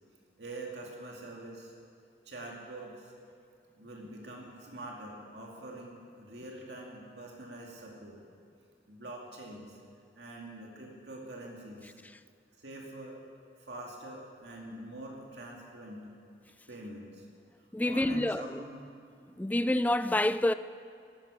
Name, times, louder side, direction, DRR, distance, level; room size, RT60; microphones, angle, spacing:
voice 1, 0.4-1.7 2.2-3.1 3.7-8.2 8.9-9.8 10.2-12.0 12.6-13.2 13.6-16.1 16.7-17.3 17.8-18.8, right 2 dB, 75° right, 2.3 m, -45 dB
voice 2, 17.7-18.6 19.4-20.5, left 1 dB, 10° left, 0.3 m, -27 dB
13.5 x 12.5 x 8.4 m
head